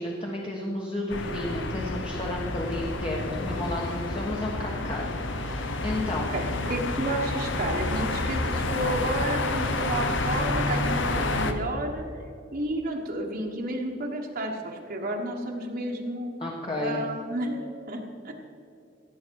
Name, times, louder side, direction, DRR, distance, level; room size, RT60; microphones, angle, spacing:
voice 1, 0.0-6.3 16.4-17.0, left 1 dB, 25° left, -2 dB, 1.3 m, -32 dB
sound 1, 1.1-11.5, left 2 dB, 70° left, 1.0 m, -29 dB
voice 2, 6.3-12.0 12.5-16.3 16.8-18.3, right 1 dB, 50° right, 0 dB, 1.3 m, -31 dB
16.5 x 8.3 x 4.7 m, 2.6 s
head